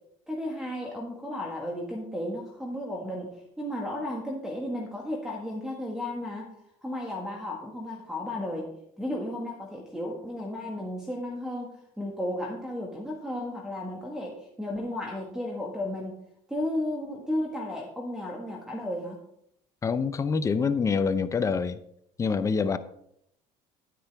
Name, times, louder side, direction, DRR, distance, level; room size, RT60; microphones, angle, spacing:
voice 1, 0.3-6.5 6.8-8.7 9.0-16.2 16.5-19.2, left 1 dB, 5° right, 1.5 m, -34 dB
voice 2, 19.8-21.8 22.2-22.8, left 5 dB, 20° left, 0.6 m, -26 dB
9.9 x 9.4 x 3.4 m
cardioid pair, 115°, 14 cm